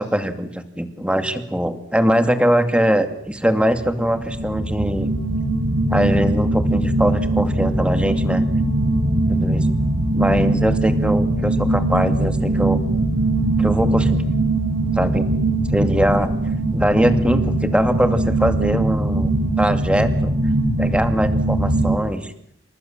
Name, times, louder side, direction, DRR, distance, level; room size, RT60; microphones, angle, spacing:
voice 1, 0.0-5.1 5.9-8.4 9.3-9.7 10.1-12.8 13.6-14.2 14.9-15.3 15.7-16.3 16.7-20.3 20.8-22.3, equal, 5° right, 9 dB, 2.5 m, -21 dB
sound 1, 3.7-22.0, right 2 dB, 60° right, 5.4 m, -21 dB
29.5 x 26.5 x 7.5 m, 0.71 s
head